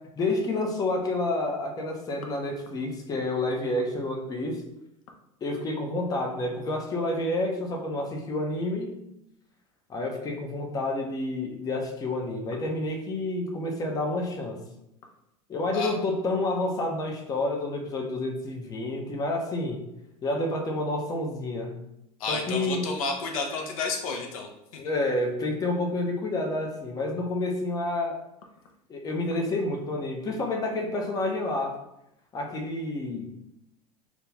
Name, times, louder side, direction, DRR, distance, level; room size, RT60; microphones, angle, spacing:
voice 1, 0.2-4.6 5.4-9.0 9.9-14.6 15.5-19.8 20.2-21.7 22.3-22.8 24.8-28.2 28.9-31.8 32.3-33.3, left 2 dB, 20° left, 2 dB, 0.5 m, -29 dB
voice 2, 22.2-24.8, left 4 dB, 65° left, 2 dB, 0.6 m, -31 dB
2.4 x 2.3 x 3.2 m, 0.84 s
hypercardioid pair, 80°, 19 cm